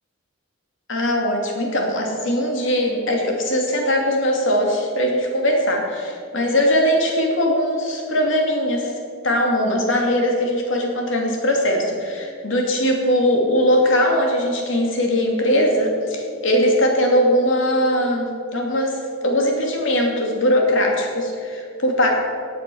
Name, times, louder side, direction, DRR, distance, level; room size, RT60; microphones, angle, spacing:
voice 1, 0.9-8.9 9.2-19.0 19.2-22.1, equal, 65° left, 1 dB, 2.7 m, -20 dB
16.5 x 8.7 x 6.3 m, 2.4 s
head